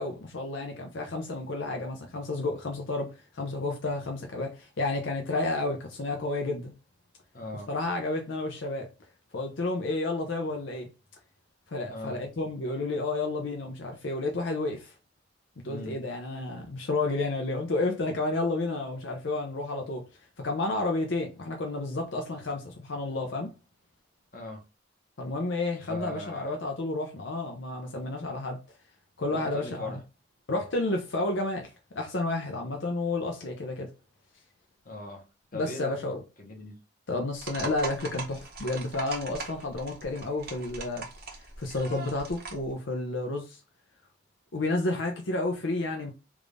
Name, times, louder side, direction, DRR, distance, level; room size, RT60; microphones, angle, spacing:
voice 1, 0.0-6.7 7.7-8.9 9.3-10.9 11.7-14.9 15.6-20.0 20.4-23.5 25.2-28.6 29.2-30.0 30.5-33.9 35.5-36.2 37.1-43.6 44.5-46.1, left 2 dB, 75° left, 0.6 m, -31 dB
voice 2, 7.3-7.7 11.9-12.2 15.6-15.9 24.3-24.6 25.7-26.6 29.3-30.0 34.8-36.0 36.4-36.8, left 2 dB, 45° left, 1.1 m, -39 dB
sound 1, 37.4-42.7, right 4 dB, 50° right, 0.8 m, -40 dB
3.6 x 2.5 x 3.3 m
head